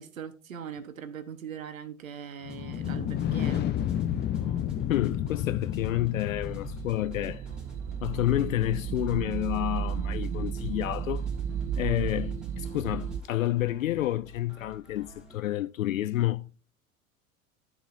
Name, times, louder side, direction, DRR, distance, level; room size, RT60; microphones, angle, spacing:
voice 1, 0.0-3.7, right 8 dB, 70° right, 1.1 m, -40 dB
sound 1, 2.4-7.3, left 10 dB, 25° left, 0.7 m, -31 dB
sound 2, 2.5-15.4, equal, ahead, 2.6 m, -54 dB
voice 2, 4.9-7.4 8.0-11.2 11.7-16.5, left 14 dB, 70° left, 0.5 m, -29 dB
sound 3, 5.5-13.2, right 7 dB, 20° right, 0.4 m, -34 dB
14.0 x 7.1 x 2.5 m
figure-of-eight pair, 80°, 42 cm